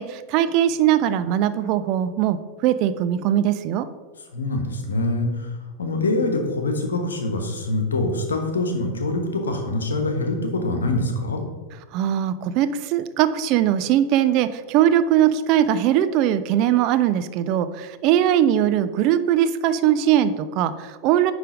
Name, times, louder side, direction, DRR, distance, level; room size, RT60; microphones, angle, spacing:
voice 1, 0.0-3.9 11.9-21.3, right 11 dB, 40° right, 11 dB, 0.4 m, -20 dB
voice 2, 4.3-5.5 5.8-11.4, left 2 dB, 70° left, 4 dB, 1.2 m, -24 dB
9.9 x 3.3 x 5.1 m, 1.4 s
figure-of-eight pair, 90°, 0 cm